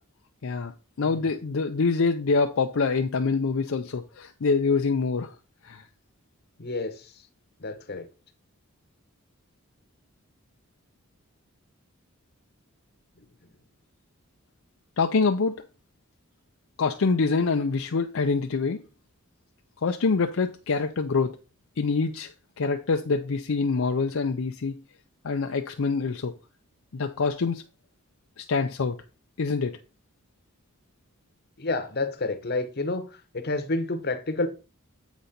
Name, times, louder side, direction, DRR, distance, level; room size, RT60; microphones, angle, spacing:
voice 1, 0.4-0.7 1.0-5.3 5.6-5.9 15.0-15.6 16.8-18.8 19.8-21.4 21.8-22.3 22.6-24.8 25.2-26.3 26.9-27.6 28.4-29.0 29.4-29.8, left 4 dB, 65° left, 0.5 m, -25 dB
voice 2, 6.6-7.3 7.6-8.1 13.2-13.3 31.6-34.5, left 2 dB, 45° left, 0.9 m, -30 dB
8.1 x 5.2 x 4.2 m
head